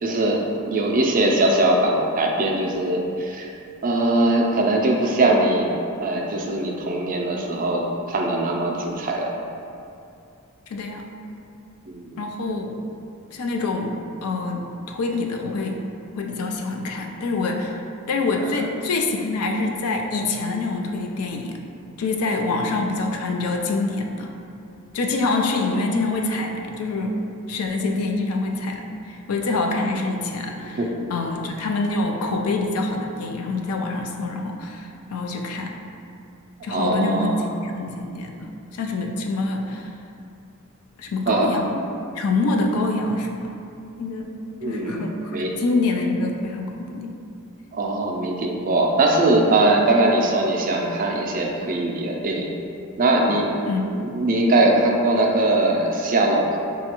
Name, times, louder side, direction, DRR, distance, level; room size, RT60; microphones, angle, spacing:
voice 1, 0.0-3.5 3.8-5.7 6.0-9.3 11.9-12.1 18.4-18.6 30.6-31.0 36.7-37.5 41.3-41.5 44.6-45.5 47.7-52.5 53.0-53.7 54.0-56.6, right 2 dB, 40° right, 0 dB, 0.4 m, -21 dB
voice 2, 10.7-11.1 12.2-12.7 13.3-15.8 16.2-17.8 18.1-21.6 22.0-24.3 24.9-27.2 27.5-30.8 31.1-35.8 36.6-39.9 41.0-41.8 42.2-43.5 44.0-44.4 44.6-47.1 53.7-54.1, left 3 dB, 80° left, 2 dB, 0.4 m, -26 dB
5.0 x 2.3 x 2.9 m, 2.6 s
head